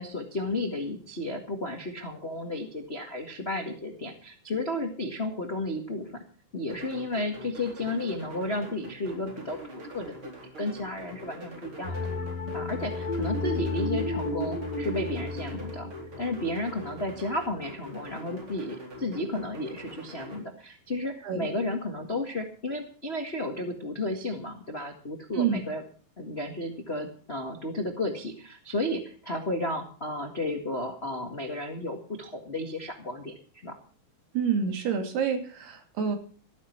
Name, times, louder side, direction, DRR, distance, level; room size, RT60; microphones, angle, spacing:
voice 1, 0.0-6.2 6.5-10.1 10.6-12.0 12.5-15.9 16.2-25.8 26.2-33.3 33.6-33.8, left 1 dB, 65° left, 5 dB, 0.6 m, -33 dB
sound 1, 6.7-20.4, equal, 30° right, 4.5 m, -44 dB
sound 2, 11.8-17.1, left 2 dB, 45° left, 3.3 m, -32 dB
voice 2, 34.3-36.2, right 7 dB, 75° right, 6 dB, 4.5 m, -27 dB
14.5 x 13.0 x 4.6 m, 0.41 s
omnidirectional pair, 4.7 m